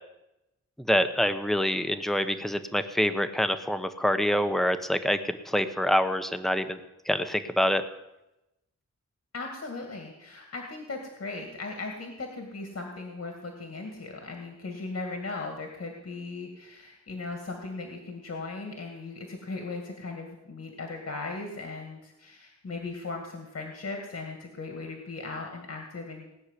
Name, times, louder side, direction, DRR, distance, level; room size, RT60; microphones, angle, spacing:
voice 1, 0.9-5.2 5.5-6.8 7.1-7.8, equal, ahead, 9 dB, 1.0 m, -26 dB
voice 2, 9.3-26.3, left 3 dB, 60° left, 2 dB, 2.2 m, -38 dB
19.0 x 6.5 x 9.9 m, 0.92 s
wide cardioid pair, 140°, 29 cm